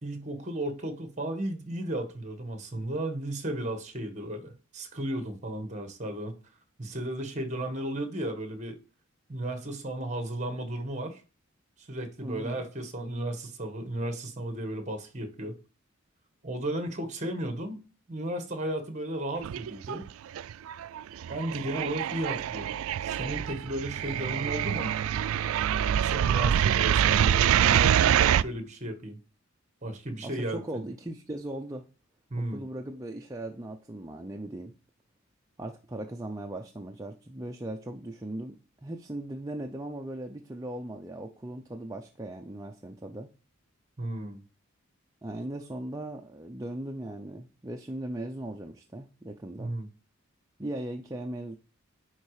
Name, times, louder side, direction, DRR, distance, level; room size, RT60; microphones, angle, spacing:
voice 1, 0.0-6.3 6.8-8.8 9.3-11.2 11.9-15.6 16.4-17.8 18.1-20.1 21.3-24.9 25.9-29.2 29.8-30.8 32.3-32.6 44.0-44.4 49.6-49.9, right 1 dB, 35° right, 1.4 m, -34 dB
voice 2, 12.2-12.7 30.2-31.9 32.4-34.7 35.6-43.3 45.2-49.7 50.6-51.6, right 1 dB, 15° right, 0.5 m, -38 dB
sound 1, 19.4-20.1 20.4-28.4, right 9 dB, 70° right, 0.3 m, -25 dB
10.0 x 4.1 x 4.8 m
head